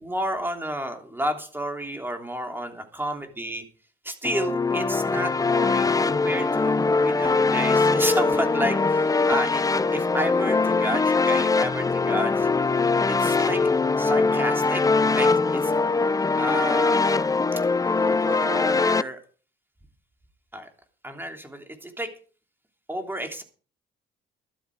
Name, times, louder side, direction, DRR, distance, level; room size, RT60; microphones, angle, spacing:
voice 1, 0.0-3.6 4.0-9.6 9.9-12.5 13.1-13.6 14.0-14.8 15.1-15.7 16.4-17.3 17.9-19.2 20.5-20.7 21.0-22.1 22.9-23.4, right 1 dB, 10° right, 4 dB, 3.1 m, -31 dB
sound 1, 4.2-19.0, left 4 dB, 15° left, 0.5 m, -22 dB
12.5 x 12.0 x 4.8 m, 0.40 s
cardioid pair, 90°, 20 cm